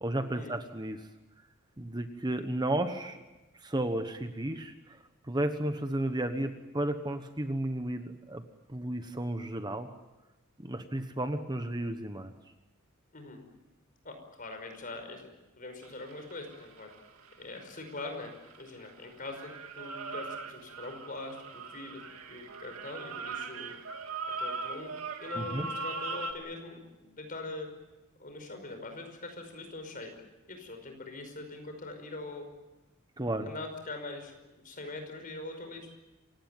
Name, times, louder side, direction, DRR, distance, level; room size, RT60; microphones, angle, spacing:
voice 1, 0.0-1.1 1.8-3.2 3.6-5.0 5.3-8.4 8.7-9.9 10.6-12.3 25.4-25.7 33.2-33.5, right 1 dB, 20° right, 8 dB, 1.2 m, -33 dB
voice 2, 14.0-15.3 15.6-16.9 17.4-23.7 24.4-24.9 25.2-27.7 28.2-30.1 30.5-32.4 33.2-34.3 34.6-35.9, left 2 dB, 40° left, 5 dB, 5.4 m, -42 dB
sound 1, 15.8-18.9 19.3-26.3, right 3 dB, 80° right, 2.3 m, -39 dB
28.0 x 17.0 x 9.3 m, 1.1 s
head